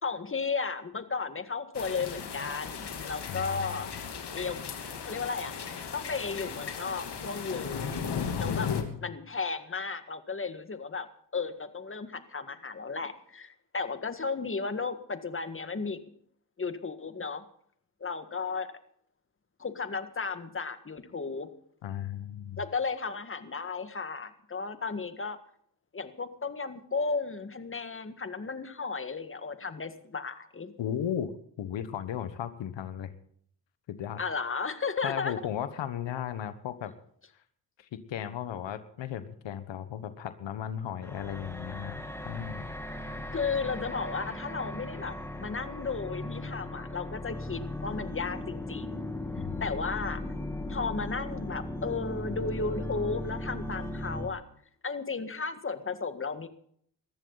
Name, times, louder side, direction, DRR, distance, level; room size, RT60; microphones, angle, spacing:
voice 1, 0.0-3.9 4.3-4.6 5.0-5.5 5.9-8.0 8.4-8.7 9.0-11.1 11.3-16.0 16.6-17.4 18.0-18.7 19.6-21.5 22.6-25.4 25.9-30.7 34.2-35.3 43.3-49.1 49.6-50.2 50.7-54.4 54.8-56.5, left 4 dB, 30° left, 10 dB, 1.8 m, -34 dB
sound 1, 1.7-8.8, left 6 dB, 65° left, 2.9 m, -36 dB
voice 2, 8.3-9.1 21.8-22.6 30.8-31.3 31.6-33.1 33.9-34.2 35.0-36.9 37.8-42.7 43.0-43.2 49.4-49.6, left 9 dB, 85° left, 12 dB, 1.3 m, -36 dB
sound 2, 41.0-54.3, left 1 dB, 5° left, 2.4 m, -37 dB
20.0 x 14.5 x 4.0 m, 0.63 s
cardioid pair, 75°, 43 cm